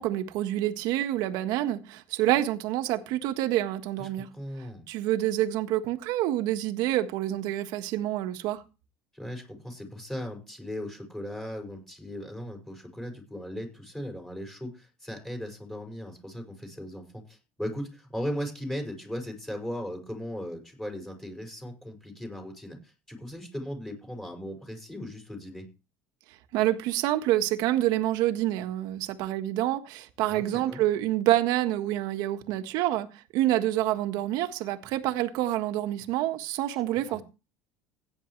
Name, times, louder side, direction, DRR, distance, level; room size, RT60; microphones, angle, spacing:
voice 1, 0.0-4.3 4.9-8.6 26.5-37.2, right 14 dB, 70° right, 1.6 m, -27 dB
voice 2, 4.0-4.9 9.1-25.7 30.3-30.8 36.9-37.2, equal, 5° left, 5.8 m, -38 dB
16.5 x 9.7 x 3.3 m
supercardioid pair, 115°, 7 cm